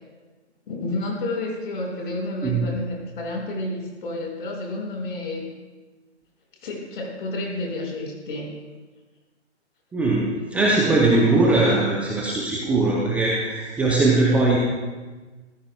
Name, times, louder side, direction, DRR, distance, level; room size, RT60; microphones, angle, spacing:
voice 1, 0.7-5.4 6.6-8.5, left 2 dB, 45° left, -2 dB, 5.8 m, -30 dB
voice 2, 2.4-2.8 9.9-14.6, right 2 dB, 5° right, -4 dB, 0.6 m, -20 dB
26.0 x 15.0 x 2.3 m, 1.3 s
figure-of-eight pair, 135°, 35 cm